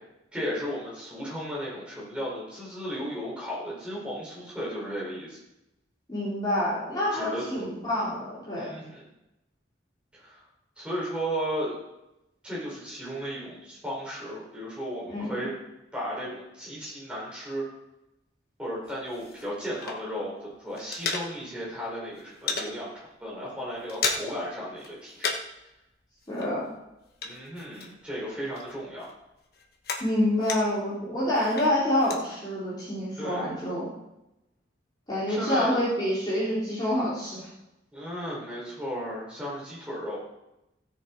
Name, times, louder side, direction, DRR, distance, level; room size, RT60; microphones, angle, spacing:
voice 1, 0.3-5.4 7.1-7.4 8.6-9.0 10.1-10.4 10.8-11.8 12.4-15.5 15.9-17.6 18.6-25.3 27.2-29.1 33.2-33.4 35.3-35.8 37.9-40.2, equal, 5° right, -6 dB, 4.8 m, -35 dB
voice 2, 6.1-8.7 15.0-15.4 26.3-26.6 30.0-33.9 35.1-37.5, left 1 dB, 25° left, -9 dB, 3.5 m, -27 dB
sound 1, 18.8-20.3 20.6-21.7 22.0-22.7 23.2-23.3 23.6-24.5 24.8-25.6 25.9-28.2 28.5-30.9 31.3-32.2, left 4 dB, 55° left, 1.3 m, -34 dB
15.5 x 6.8 x 4.6 m, 0.90 s
head